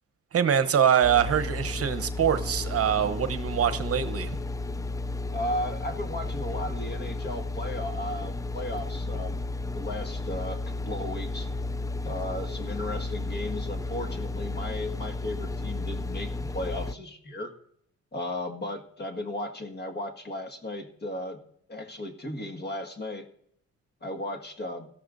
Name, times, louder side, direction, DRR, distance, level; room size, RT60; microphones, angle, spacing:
voice 1, 0.3-4.3, right 9 dB, 50° right, 11 dB, 0.9 m, -24 dB
sound 1, 1.0-16.9, left 2 dB, 10° left, 0.4 m, -33 dB
voice 2, 5.3-9.4 9.7-10.6 10.9-11.5 12.0-17.5 18.1-21.4 21.7-23.3 24.0-24.9, left 1 dB, 35° left, 6 dB, 1.7 m, -35 dB
17.5 x 13.0 x 2.6 m, 0.69 s
cardioid pair, 90°, 30 cm